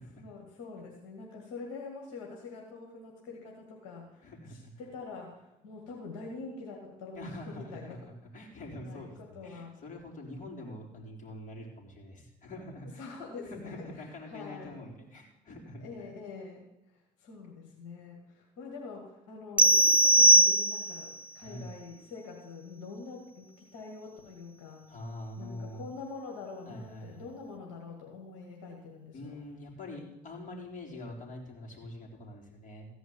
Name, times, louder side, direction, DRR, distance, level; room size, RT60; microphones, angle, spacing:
voice 1, 0.0-8.0 8.8-9.7 13.0-14.7 15.8-24.9 25.4-29.4, left 4 dB, 85° left, 0 dB, 2.1 m, -45 dB
voice 2, 4.2-4.7 7.1-13.2 13.4-16.1 21.4-21.7 24.9-25.9 26.7-27.3 29.1-32.9, left 1 dB, 45° left, 0 dB, 4.0 m, -45 dB
sound 1, 19.6-21.1, right 1 dB, 10° right, 0.3 m, -20 dB
15.0 x 5.0 x 9.5 m, 0.91 s
supercardioid pair, 65°, 18 cm